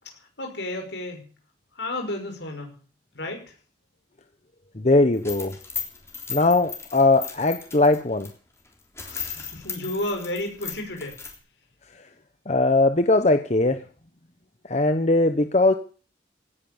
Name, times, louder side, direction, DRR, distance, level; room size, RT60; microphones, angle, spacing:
voice 1, 0.2-1.3 1.7-2.8 3.1-3.5 9.0-11.2, left 1 dB, 75° left, 3 dB, 5.8 m, -32 dB
voice 2, 4.7-5.6 6.3-8.3 12.5-13.8 14.7-15.7, left 2 dB, 40° left, 8 dB, 0.9 m, -20 dB
sound 1, 5.1-8.3 8.7-8.8 9.0-11.4, left 6 dB, 15° left, 3.5 m, -36 dB
17.0 x 10.5 x 7.1 m, 0.40 s
head